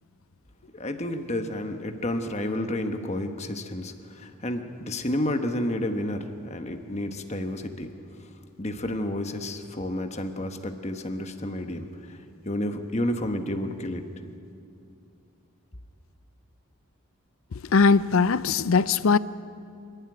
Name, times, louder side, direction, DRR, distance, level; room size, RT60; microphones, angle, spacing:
voice 1, 0.7-7.9 8.6-12.2 12.4-14.1, left 1 dB, 30° left, 1.2 m, -30 dB
voice 2, 17.7-19.2, left 4 dB, 65° left, 0.5 m, -20 dB
27.0 x 11.5 x 9.7 m
head